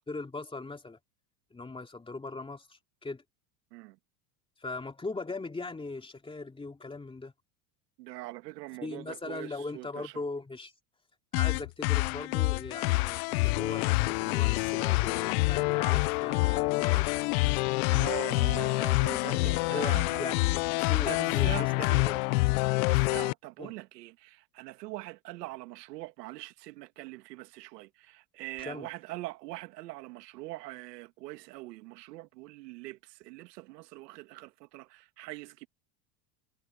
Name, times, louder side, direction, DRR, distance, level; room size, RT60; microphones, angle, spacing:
voice 1, 0.1-1.0 1.5-3.2 4.6-7.3 8.8-10.7 11.3-17.2 19.7-21.7 22.0-22.2 23.6-23.7 28.6-28.9, left 3 dB, 10° left, 2.7 m, -39 dB
voice 2, 8.0-10.1 17.9-20.5 21.1-22.1 22.8-35.7, right 19 dB, 80° right, 1.7 m, -43 dB
sound 1, 11.3-23.3, left 25 dB, 70° left, 0.6 m, -27 dB
supercardioid pair, 125°, 47 cm